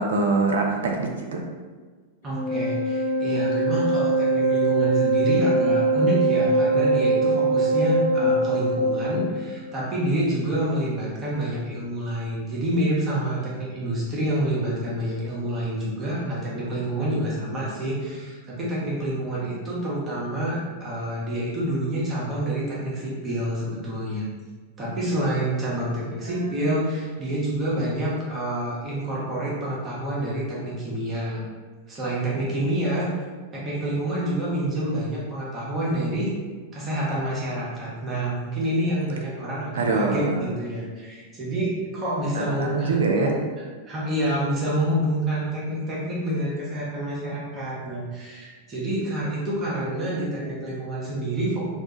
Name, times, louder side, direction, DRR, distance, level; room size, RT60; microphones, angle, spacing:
voice 1, 0.0-1.4 26.2-26.7 39.7-40.4 42.3-43.4, right 3 dB, 65° right, 2 dB, 0.4 m, -24 dB
voice 2, 2.2-24.3 24.8-31.4 31.9-33.1 33.5-36.3 36.7-43.4 43.8-51.8, right 1 dB, 25° right, -6 dB, 0.7 m, -28 dB
Wind instrument woodwind instrument, 2.3-9.3, right 2 dB, 55° left, 0.7 m, -22 dB
2.3 x 2.2 x 2.8 m, 1.4 s
figure-of-eight pair, 90°, 0 cm